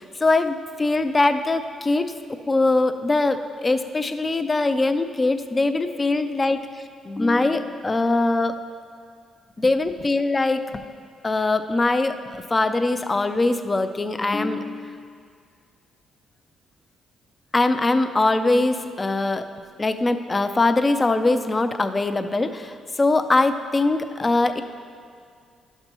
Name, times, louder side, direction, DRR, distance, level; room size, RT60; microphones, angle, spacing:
voice 1, 0.0-2.1 2.5-6.7 7.1-8.5 9.6-10.8 11.2-15.1 17.5-19.5 19.8-24.6, left 2 dB, 25° left, 9 dB, 0.4 m, -22 dB
11.0 x 6.7 x 3.0 m, 2.2 s
cardioid pair, 90°, 0 cm